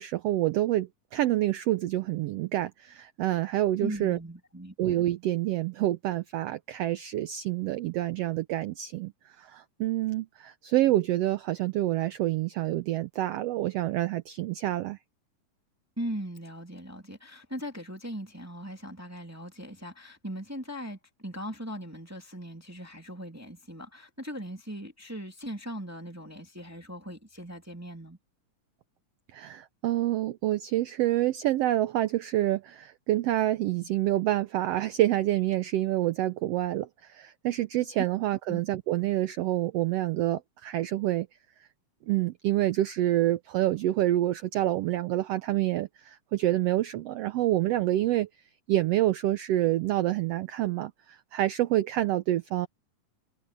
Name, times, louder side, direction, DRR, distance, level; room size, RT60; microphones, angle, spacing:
voice 1, 0.0-4.2 4.8-9.1 9.4-15.0 29.3-41.3 42.1-48.3 48.7-52.7, right 14 dB, 85° right, 1.4 m, -27 dB
voice 2, 3.8-5.1 16.0-28.2 38.5-38.6, equal, 5° right, 2.2 m, -39 dB
omnidirectional pair, 3.6 m